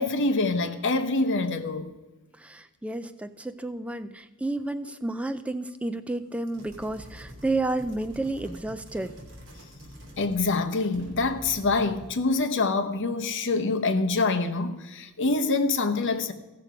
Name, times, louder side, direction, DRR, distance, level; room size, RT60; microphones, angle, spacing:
voice 1, 0.0-1.9 10.2-16.3, left 3 dB, 55° left, 0.9 m, -25 dB
voice 2, 2.3-9.2, right 2 dB, 5° right, 0.3 m, -31 dB
sound 1, 6.4-10.7 10.9-12.2, equal, 55° right, 2.7 m, -45 dB
15.5 x 6.8 x 5.0 m
head